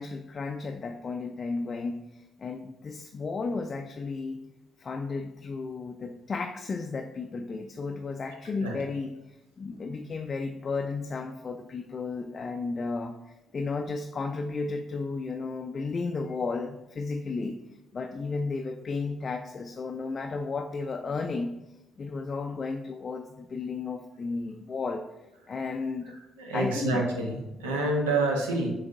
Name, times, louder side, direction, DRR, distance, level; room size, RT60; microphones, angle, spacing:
voice 1, 0.0-2.0 2.4-4.4 4.8-13.2 13.5-17.6 17.9-21.5 22.0-25.0 25.5-26.2 26.5-27.0, left 4 dB, 45° left, 5 dB, 0.3 m, -33 dB
voice 2, 26.4-28.7, right 2 dB, 80° right, 1 dB, 0.7 m, -27 dB
7.0 x 2.7 x 2.6 m, 0.96 s
figure-of-eight pair, 40°, 0 cm